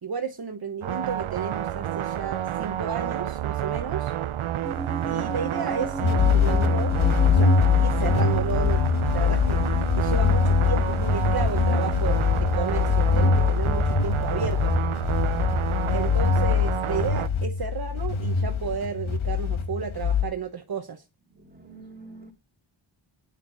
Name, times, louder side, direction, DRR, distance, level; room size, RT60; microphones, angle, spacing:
voice 1, 0.0-4.1 5.1-6.9 7.3-8.8 9.1-9.6 9.9-14.7 15.9-21.0, right 6 dB, 50° right, 1.1 m, -32 dB
sound 1, 0.8-17.3, right 11 dB, 90° right, 0.7 m, -30 dB
sound 2, 4.6-12.1, left 2 dB, 25° left, 4.2 m, -37 dB
sound 3, 6.0-20.2, left 6 dB, 80° left, 1.9 m, -23 dB
voice 2, 21.4-22.3, right 3 dB, 20° right, 3.6 m, -46 dB
14.0 x 10.0 x 4.0 m
wide cardioid pair, 90°, 48 cm